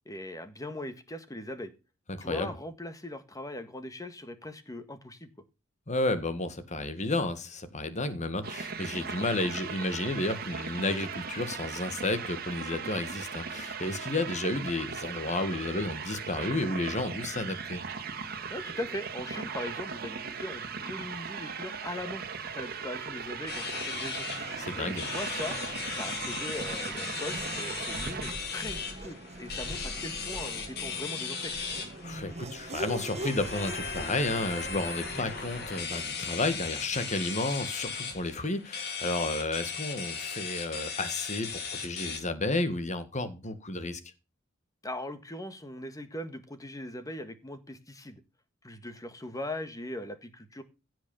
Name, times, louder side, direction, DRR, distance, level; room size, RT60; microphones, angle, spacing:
voice 1, 0.0-1.7 2.2-5.3 18.5-22.2 22.5-24.3 24.8-25.6 26.0-31.5 44.8-48.2 48.6-50.6, left 1 dB, 20° left, 1.6 m, -40 dB
voice 2, 2.1-2.5 5.9-17.8 24.6-25.0 32.0-44.0, left 2 dB, 40° left, 1.8 m, -32 dB
sound 1, 8.4-28.3, right 6 dB, 50° right, 1.8 m, -38 dB
Race car auto racing / Accelerating revving vroom, 22.9-38.5, right 1 dB, 35° right, 1.4 m, -44 dB
sound 2, 23.5-42.2, left 5 dB, 55° left, 3.5 m, -37 dB
16.0 x 6.3 x 7.1 m
head